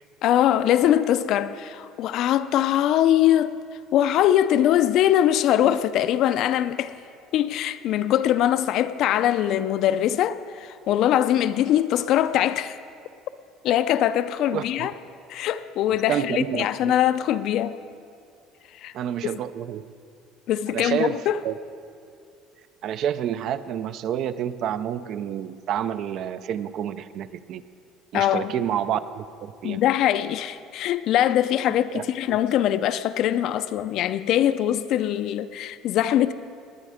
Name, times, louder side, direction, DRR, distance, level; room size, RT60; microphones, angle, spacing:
voice 1, 0.2-3.6 3.9-7.0 7.3-12.8 13.6-14.9 15.3-17.8 18.8-18.9 19.2-19.4 20.5-21.4 28.1-28.5 29.6-36.3, left 11 dB, 50° left, 0.4 m, -22 dB
voice 2, 14.5-14.9 16.1-16.9 18.9-19.8 20.7-21.1 21.4-21.5 22.8-27.6 28.1-29.8 31.9-32.0, right 10 dB, 45° right, 0.4 m, -29 dB
20.0 x 10.0 x 5.0 m
cardioid pair, 170°, 0 cm